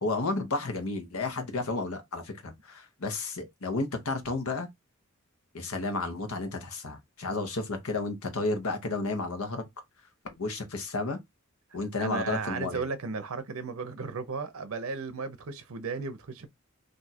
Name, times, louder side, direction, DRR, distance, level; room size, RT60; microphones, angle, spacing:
voice 1, 0.0-4.7 5.5-9.6 10.2-11.2 11.7-12.9, left 3 dB, 80° left, 0.9 m, -32 dB
voice 2, 12.0-16.5, right 4 dB, 70° right, 0.6 m, -35 dB
2.6 x 2.3 x 4.1 m
head